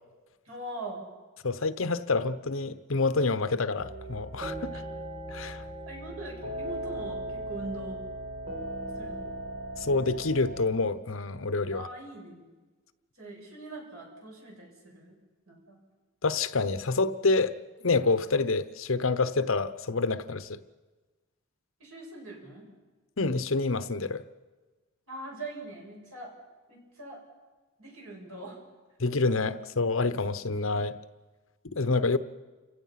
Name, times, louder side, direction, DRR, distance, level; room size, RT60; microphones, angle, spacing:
voice 1, 0.4-1.0 4.7-4.8 5.9-8.0 8.9-9.3 11.7-12.5 13.1-15.1 15.5-15.8 21.8-22.7 25.1-26.3 26.7-27.2 27.8-28.6, right 2 dB, 90° right, 7.6 m, -42 dB
voice 2, 1.4-4.8 5.3-5.6 9.8-11.9 16.2-17.6 17.8-20.6 23.2-24.2 29.0-31.0 31.7-32.2, left 3 dB, 65° left, 0.9 m, -27 dB
sound 1, 3.8-10.6, right 1 dB, 40° right, 4.3 m, -38 dB
29.5 x 17.0 x 5.9 m
head